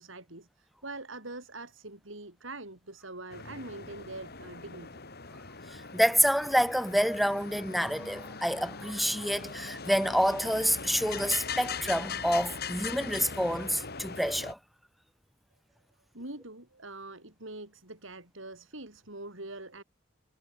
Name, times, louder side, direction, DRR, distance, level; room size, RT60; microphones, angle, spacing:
voice 1, 0.0-5.0 16.1-19.8, right 2 dB, 70° right, 6.6 m, -44 dB
sound 1, 3.3-14.5, left 5 dB, 55° left, 4.5 m, -40 dB
voice 2, 5.7-14.6, equal, ahead, 0.7 m, -28 dB
head